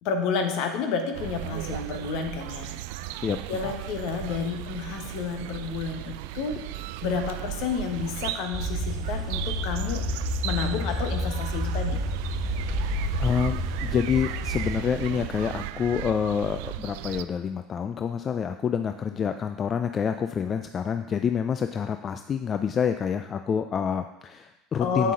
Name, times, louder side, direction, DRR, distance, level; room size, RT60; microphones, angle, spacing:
voice 1, 0.0-2.7 3.5-6.6 7.0-10.0 10.4-12.0 24.8-25.1, left 5 dB, 60° left, 6 dB, 1.3 m, -30 dB
sound 1, 1.1-17.2, right 14 dB, 70° right, 0.3 m, -36 dB
voice 2, 3.2-3.6 12.7-12.9 13.2-25.1, left 7 dB, 35° left, 8 dB, 0.4 m, -27 dB
sound 2, 8.5-14.8, equal, 10° right, 2.1 m, -30 dB
8.5 x 7.3 x 3.8 m, 0.97 s
hypercardioid pair, 75°, 0 cm